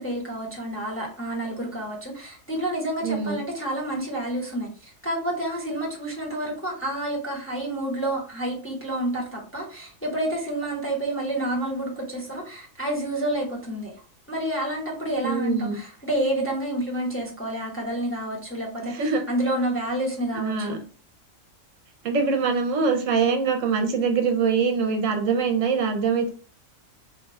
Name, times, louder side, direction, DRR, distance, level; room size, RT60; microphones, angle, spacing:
voice 1, 0.0-13.9 14.3-20.8, right 1 dB, 10° left, -3 dB, 0.8 m, -29 dB
voice 2, 3.0-3.4 15.2-15.8 18.9-19.2 20.3-20.8 22.0-26.3, right 5 dB, 70° right, 4 dB, 1.0 m, -23 dB
3.6 x 2.3 x 4.1 m, 0.40 s
omnidirectional pair, 1.4 m